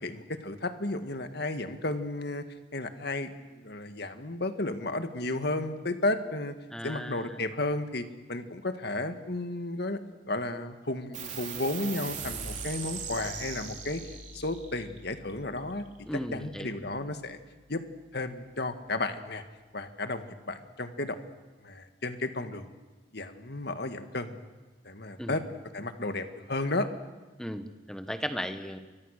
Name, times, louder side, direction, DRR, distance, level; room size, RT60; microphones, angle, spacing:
voice 1, 0.0-2.4 2.7-3.3 3.6-6.5 6.8-10.0 10.3-14.0 14.3-15.8 16.3-17.4 17.7-17.8 18.1-19.4 19.7-21.2 21.6-22.6 23.1-24.4 24.8-25.4 25.7-26.9, left 2 dB, 55° left, 8 dB, 1.8 m, -33 dB
voice 2, 6.7-7.4 16.0-16.8 25.2-25.4 27.4-28.8, equal, 5° left, 8 dB, 1.3 m, -36 dB
sound 1, 11.1-18.0, right 6 dB, 40° right, 3.7 m, -41 dB
30.0 x 24.0 x 6.7 m, 1.3 s
head